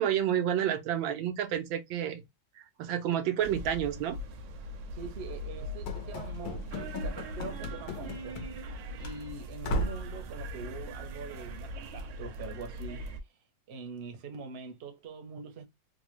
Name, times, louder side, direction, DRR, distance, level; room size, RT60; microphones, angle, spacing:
voice 1, 0.0-2.2 2.8-4.2, right 10 dB, 90° right, 1.5 m, -29 dB
sound 1, 3.4-13.2, equal, 70° right, 1.3 m, -40 dB
voice 2, 4.9-8.4 9.0-13.1 13.7-15.7, right 5 dB, 50° right, 0.8 m, -43 dB
Run / Slam, 5.9-8.7 9.0-9.2 9.6-10.1, left 1 dB, 80° left, 1.5 m, -36 dB
3.8 x 2.2 x 3.0 m
omnidirectional pair, 2.1 m